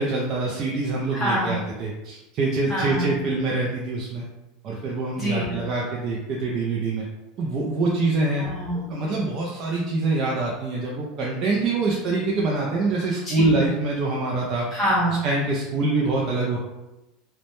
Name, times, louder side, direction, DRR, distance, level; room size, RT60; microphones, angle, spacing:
voice 1, 0.0-4.3 4.6-7.0 7.4-8.5 8.9-14.7 15.1-16.6, right 3 dB, 35° right, -3 dB, 0.3 m, -25 dB
voice 2, 1.1-1.6 2.7-3.2 5.2-5.6 8.4-8.8 13.2-13.7 14.7-15.2, equal, 5° right, -10 dB, 0.6 m, -25 dB
2.1 x 2.0 x 2.9 m, 0.98 s
supercardioid pair, 155°, 0 cm